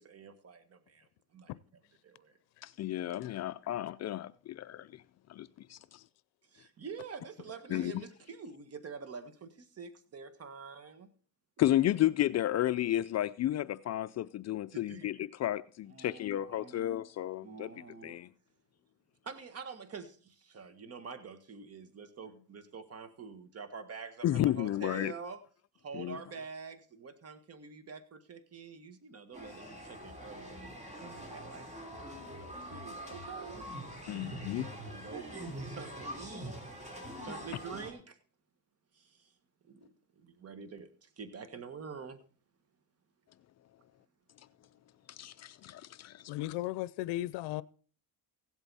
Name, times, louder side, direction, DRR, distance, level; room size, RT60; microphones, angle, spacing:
voice 1, 0.0-1.5 2.0-2.3 6.5-11.1 11.7-11.8 14.7-15.1 15.9-16.9 17.4-18.1 19.2-25.4 25.8-31.6 32.3-33.7 34.6-36.5 37.1-38.2 38.9-39.3 39.6-42.2, right 5 dB, 35° right, 1.7 m, -47 dB
voice 2, 2.6-5.0 5.3-5.8 7.7-8.0 11.6-17.7 18.0-18.3 24.2-25.1 25.9-26.2 34.1-34.7 45.1-46.3, left 13 dB, 40° left, 0.4 m, -32 dB
sound 1, 29.3-37.9, equal, 15° right, 3.3 m, -44 dB
voice 3, 46.3-47.6, left 16 dB, 80° left, 0.6 m, -36 dB
16.0 x 8.1 x 4.1 m
cardioid pair, 110°, 41 cm